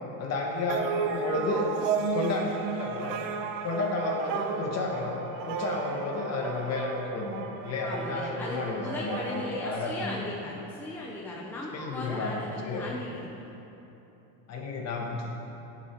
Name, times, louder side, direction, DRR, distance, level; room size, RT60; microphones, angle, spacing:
voice 1, 0.2-2.4 2.7-3.2 3.6-10.2 11.7-12.8 14.5-15.4, left 3 dB, 35° left, 0 dB, 1.5 m, -32 dB
sound 1, 0.7-10.5, right 6 dB, 50° right, 0.7 m, -34 dB
voice 2, 7.8-13.3, left 1 dB, 5° left, -4 dB, 0.6 m, -37 dB
10.5 x 7.2 x 4.6 m, 3.0 s
cardioid pair, 145°, 45 cm